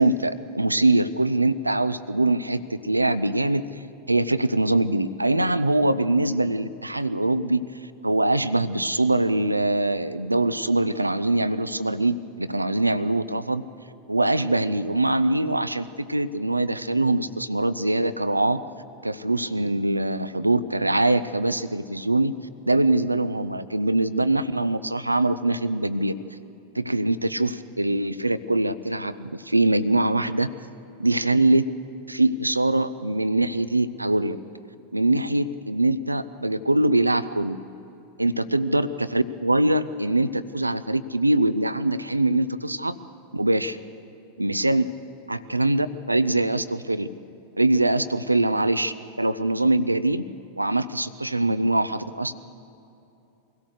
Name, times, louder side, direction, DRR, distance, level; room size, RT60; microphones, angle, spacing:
voice 1, 0.0-3.7 4.1-7.7 8.0-13.6 14.1-18.6 19.0-22.3 22.6-26.1 26.7-30.5 31.0-31.6 32.1-34.4 34.9-37.6 38.2-43.0 43.3-43.8 44.4-44.9 45.3-47.1 47.6-50.3 50.6-52.3, right 2 dB, 85° right, 14 dB, 0.6 m, -23 dB
23.5 x 16.5 x 6.5 m, 2.9 s
figure-of-eight pair, 90°, 0 cm